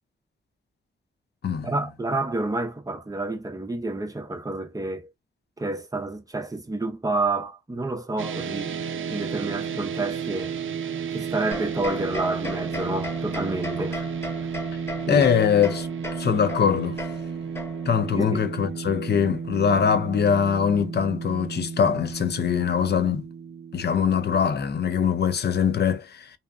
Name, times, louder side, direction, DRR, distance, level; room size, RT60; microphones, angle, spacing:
voice 1, 1.6-5.1 5.6-8.8 9.1-10.5 11.1-14.1 15.1-15.3 18.1-18.4, right 2 dB, 15° right, 0.6 m, -29 dB
sound 1, 8.2-24.5, right 6 dB, 70° right, 0.4 m, -33 dB
sound 2, 11.5-18.1, left 1 dB, 10° left, 0.9 m, -37 dB
voice 2, 15.1-15.9 16.2-17.0 17.9-23.3 23.7-26.3, left 7 dB, 55° left, 0.5 m, -22 dB
2.7 x 2.1 x 2.4 m
cardioid pair, 85°, 21 cm